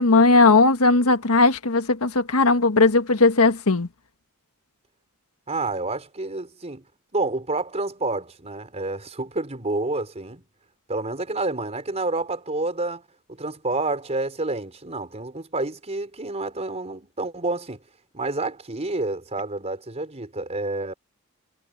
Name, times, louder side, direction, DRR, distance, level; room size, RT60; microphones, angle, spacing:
voice 1, 0.0-3.9, left 3 dB, 85° left, 1.6 m, -17 dB
voice 2, 5.5-6.8 7.1-10.4 10.9-13.0 13.3-17.8 18.1-20.9, right 2 dB, 30° right, 4.1 m, -29 dB
head